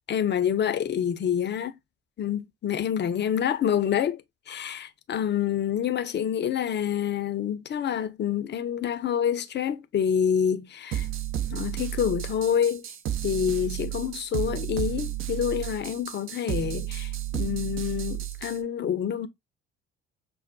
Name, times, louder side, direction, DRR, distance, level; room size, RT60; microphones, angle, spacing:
voice 1, 0.1-1.7 2.2-4.2 4.5-11.1 11.5-12.9 13.2-19.3, left 9 dB, 30° left, 0.5 m, -27 dB
sound 1, 10.9-18.6, right 12 dB, 35° right, 0.5 m, -32 dB
6.0 x 2.0 x 2.6 m
figure-of-eight pair, 55°, 35 cm